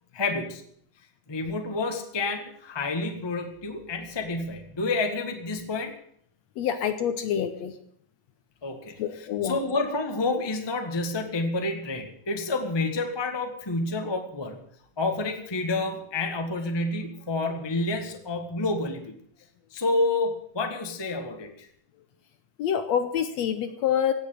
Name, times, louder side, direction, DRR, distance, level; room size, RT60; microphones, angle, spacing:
voice 1, 0.1-0.6 1.3-5.9 8.6-9.0 9.4-14.6 15.0-19.1 19.7-21.7, left 2 dB, 15° left, 5 dB, 0.9 m, -29 dB
voice 2, 6.6-7.8 9.0-9.6 22.6-24.1, left 9 dB, 70° left, 10 dB, 1.8 m, -26 dB
16.5 x 8.1 x 9.1 m, 0.64 s
omnidirectional pair, 3.7 m